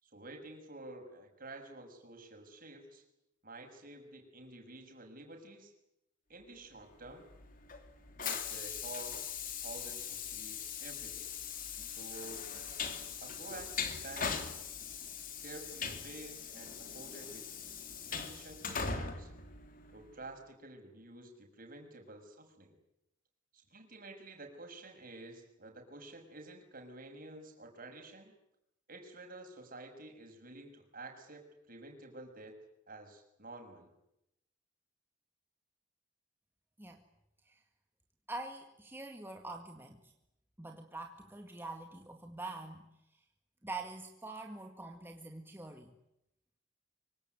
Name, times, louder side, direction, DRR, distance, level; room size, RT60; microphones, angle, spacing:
voice 1, 0.0-3.0 3.4-5.7 6.3-7.3 8.1-11.3 11.8-12.5 13.2-14.4 15.4-17.5 18.0-19.3 19.9-22.7 23.5-28.3 28.9-32.6 32.9-33.9, right 2 dB, 45° right, 4 dB, 6.6 m, -50 dB
Train, 7.1-20.2, left 6 dB, 45° left, 3.2 m, -41 dB
voice 2, 38.3-40.1 40.6-43.2 43.6-45.9, right 2 dB, 10° right, 3 dB, 1.9 m, -45 dB
25.0 x 25.0 x 9.5 m, 0.84 s
head